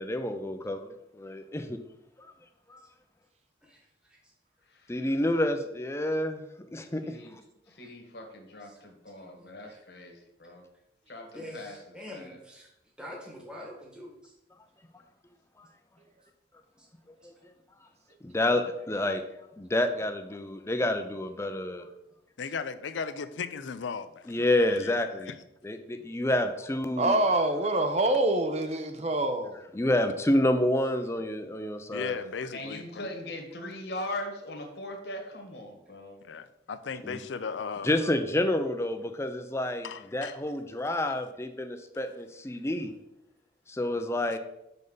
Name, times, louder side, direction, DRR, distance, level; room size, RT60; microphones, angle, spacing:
voice 1, 0.0-1.8 2.7-2.9 4.9-6.5 6.7-7.0 15.6-15.7 17.2-17.3 18.2-19.2 19.6-21.9 24.3-25.3 25.6-27.2 29.7-32.2 37.0-37.2 37.8-42.9 43.7-44.4, left 1 dB, 15° left, 0.5 m, -28 dB
voice 2, 7.0-7.4 7.7-10.6 11.1-12.4 32.5-36.2, left 1 dB, 60° left, 1.4 m, -40 dB
voice 3, 9.2-9.8 11.3-12.7 13.0-14.3 16.8-16.9, left 1 dB, 5° right, 1.3 m, -45 dB
voice 4, 22.4-24.4 24.8-24.9 31.9-33.1 36.2-37.9 39.8-40.4, left 5 dB, 75° left, 0.5 m, -36 dB
voice 5, 27.0-29.6, right 2 dB, 35° right, 0.7 m, -25 dB
6.6 x 5.4 x 3.9 m
head